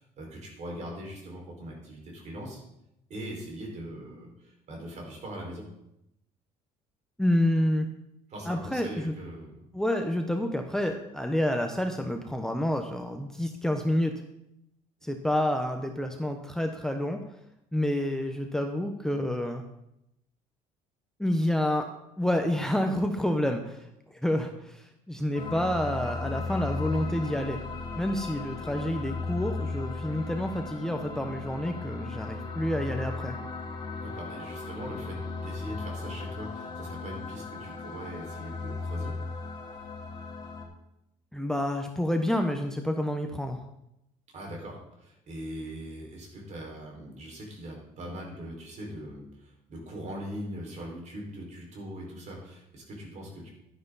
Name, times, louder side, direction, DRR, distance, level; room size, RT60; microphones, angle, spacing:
voice 1, 0.0-2.6 3.1-5.6 8.3-9.6 34.0-39.1 44.3-53.5, equal, 50° right, -1 dB, 5.2 m, -41 dB
voice 2, 7.2-7.9 8.5-9.1 9.7-14.1 15.0-17.2 17.7-19.6 21.2-21.9 22.2-27.6 28.0-33.4 41.3-43.6, left 1 dB, 5° left, 5 dB, 1.0 m, -28 dB
sound 1, 25.3-40.6, left 3 dB, 30° left, 4.3 m, -36 dB
11.5 x 11.0 x 4.1 m, 0.84 s
cardioid pair, 100°, 15 cm